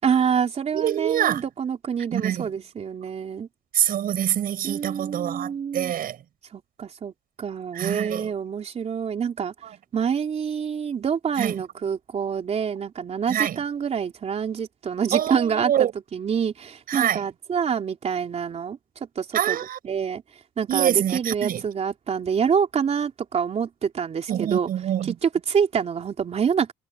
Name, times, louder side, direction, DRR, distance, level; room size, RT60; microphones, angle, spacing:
voice 1, 0.0-3.5 4.6-5.9 6.5-7.1 7.4-9.5 9.9-19.6 19.8-20.2 20.6-24.7 25.0-26.7, right 7 dB, 40° right, 3.6 m, -26 dB
voice 2, 0.7-1.4 2.1-2.5 3.7-6.2 7.7-8.3 11.4-11.5 13.3-13.6 15.1-15.9 16.9-17.2 19.3-19.8 20.7-21.6 24.3-25.1, right 11 dB, 60° right, 6.9 m, -25 dB
cardioid pair, 110°, 17 cm